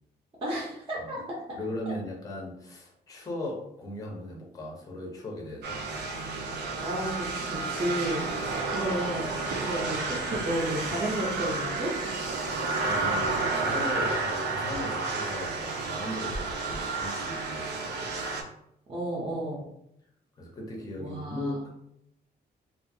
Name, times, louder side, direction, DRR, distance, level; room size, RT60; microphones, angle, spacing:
voice 1, 0.4-1.4 6.8-8.3 8.7-11.9 18.9-19.6 21.0-21.6, right 1 dB, 30° right, -5 dB, 0.6 m, -32 dB
voice 2, 1.5-5.8 8.6-8.7 12.8-18.3 20.4-21.7, left 1 dB, 20° left, -1 dB, 0.5 m, -38 dB
sound 1, 5.6-18.4, right 3 dB, 80° right, 0.5 m, -31 dB
2.6 x 2.3 x 2.6 m, 0.77 s
wide cardioid pair, 170°, 17 cm